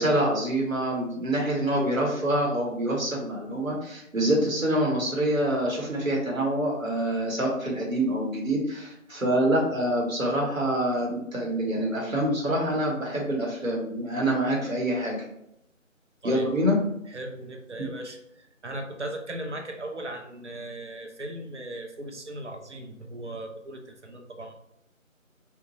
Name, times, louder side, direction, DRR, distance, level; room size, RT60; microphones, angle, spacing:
voice 1, 0.0-15.2 16.2-16.8, right 1 dB, 75° right, -3 dB, 1.0 m, -26 dB
voice 2, 17.1-24.5, right 1 dB, 60° right, 4 dB, 0.5 m, -38 dB
2.9 x 2.2 x 2.6 m, 0.79 s
figure-of-eight pair, 170°, 40 cm